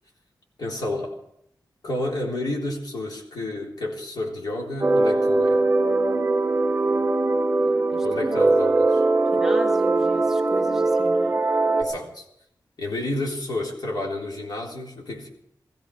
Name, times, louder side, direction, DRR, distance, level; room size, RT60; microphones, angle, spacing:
voice 1, 0.6-1.2 1.8-5.6 8.0-9.0 11.8-12.3 12.8-15.3, left 1 dB, 65° left, -1 dB, 3.7 m, -30 dB
sound 1, 4.8-11.8, right 2 dB, 30° right, 1.8 m, -21 dB
voice 2, 7.9-8.5 9.3-11.4, right 1 dB, 5° right, 1 dB, 1.4 m, -37 dB
18.0 x 15.0 x 4.9 m, 0.75 s
wide cardioid pair, 170°, 7 cm